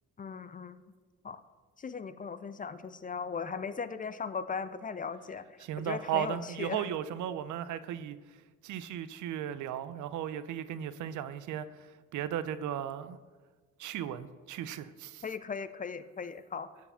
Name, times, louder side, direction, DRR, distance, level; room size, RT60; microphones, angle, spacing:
voice 1, 0.2-0.8 1.2-1.4 1.8-5.5 5.8-6.9 15.2-16.7, left 5 dB, 30° left, 13 dB, 0.5 m, -38 dB
voice 2, 5.6-8.2 8.6-11.7 12.1-13.2 13.8-15.2, right 10 dB, 75° right, 14 dB, 0.6 m, -36 dB
12.0 x 4.8 x 5.6 m, 1.4 s
cardioid pair, 90°, 30 cm